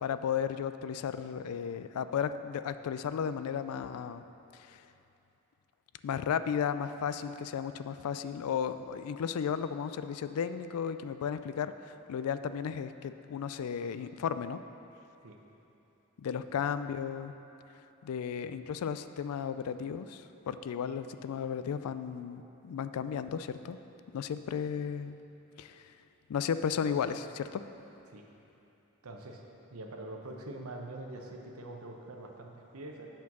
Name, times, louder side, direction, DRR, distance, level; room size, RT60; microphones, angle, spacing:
voice 1, 0.0-4.2 4.7-4.8 6.0-14.6 16.2-17.3 18.0-23.8 24.1-25.2 25.6-25.9 26.3-27.6, left 7 dB, 80° left, 11 dB, 0.3 m, -34 dB
voice 2, 29.0-29.4 29.7-33.1, right 2 dB, 75° right, 1 dB, 0.8 m, -44 dB
8.3 x 4.5 x 6.0 m, 2.9 s
head